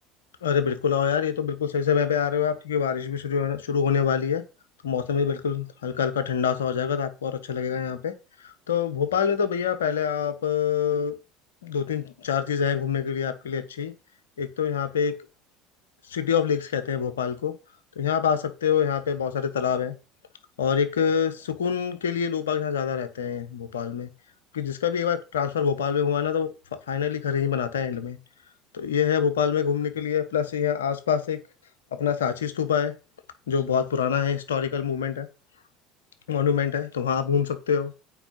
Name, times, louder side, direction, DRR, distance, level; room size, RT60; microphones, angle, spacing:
voice 1, 0.4-4.4 4.8-11.1 11.6-13.9 14.4-15.1 16.1-17.5 18.0-19.9 20.6-24.1 24.5-26.5 26.9-28.2 28.7-31.4 32.0-32.9 33.5-35.3 36.3-37.9, left 7 dB, 80° left, 10 dB, 1.2 m, -25 dB
8.9 x 5.0 x 5.4 m, 0.30 s
figure-of-eight pair, 65°, 0 cm